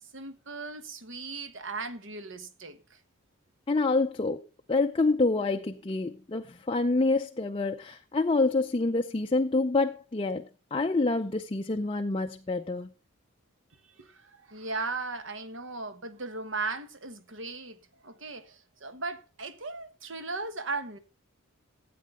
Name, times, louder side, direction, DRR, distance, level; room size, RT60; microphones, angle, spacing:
voice 1, 0.1-3.0 13.8-21.0, right 3 dB, 55° right, 1.2 m, -37 dB
voice 2, 3.7-12.9, left 3 dB, 25° left, 0.5 m, -27 dB
13.0 x 8.5 x 3.7 m
head